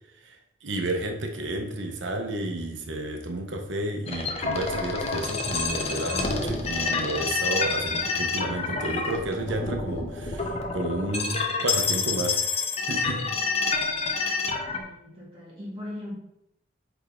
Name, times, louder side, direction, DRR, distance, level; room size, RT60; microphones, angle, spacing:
voice 1, 0.6-12.4 12.9-13.3, right 1 dB, 75° right, 3 dB, 1.0 m, -31 dB
sound 1, 4.1-14.8, left 4 dB, 30° left, 0.7 m, -28 dB
voice 2, 14.7-16.2, left 1 dB, 30° right, -6 dB, 1.7 m, -39 dB
8.2 x 3.6 x 3.7 m, 0.80 s
head